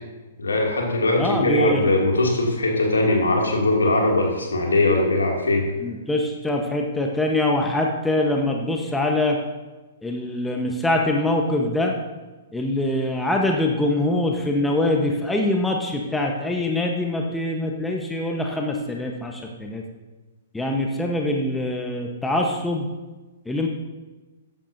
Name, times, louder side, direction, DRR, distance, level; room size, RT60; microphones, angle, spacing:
voice 1, 0.4-5.7, left 2 dB, 75° left, -1 dB, 2.6 m, -21 dB
voice 2, 1.2-1.8 5.8-9.4 10.0-11.9 12.5-19.8 20.5-22.9 23.4-23.7, left 1 dB, 5° left, 1 dB, 1.1 m, -23 dB
15.0 x 10.5 x 2.7 m, 1.2 s
figure-of-eight pair, 115°, 0 cm